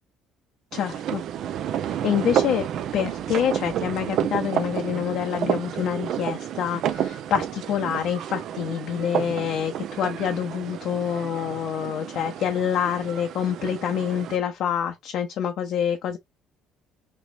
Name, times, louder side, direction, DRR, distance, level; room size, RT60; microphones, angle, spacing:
voice 1, 0.7-1.2 1.8-2.7 2.9-16.2, left 9 dB, 65° left, 0.5 m, -27 dB
sound 1, 0.7-14.4, right 10 dB, 60° right, 0.4 m, -30 dB
3.2 x 2.9 x 2.3 m
hypercardioid pair, 65°, 0 cm